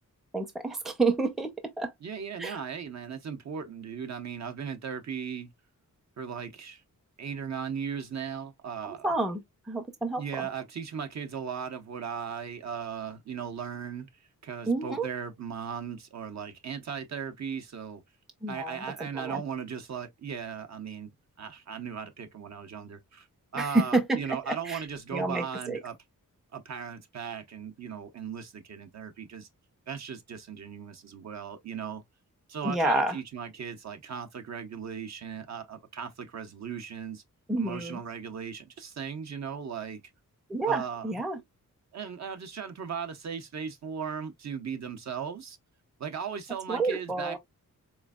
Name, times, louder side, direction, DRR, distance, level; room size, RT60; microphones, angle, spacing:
voice 1, 0.3-1.9 2.4-2.6 8.8-10.5 14.7-15.1 18.4-19.4 23.6-24.8 25.1-25.8 32.6-33.2 37.5-38.0 40.5-41.4 46.7-47.4, right 2 dB, ahead, 0.5 m, -29 dB
voice 2, 2.0-5.5 6.2-6.8 7.2-9.1 10.1-14.1 14.4-18.0 18.5-21.1 21.4-23.3 23.5-26.0 26.5-29.5 29.9-32.0 32.5-37.2 37.6-40.0 40.7-41.1 41.9-45.6 46.0-47.4, right 7 dB, 55° right, 0.7 m, -37 dB
4.1 x 3.1 x 2.3 m
wide cardioid pair, 180°, 34 cm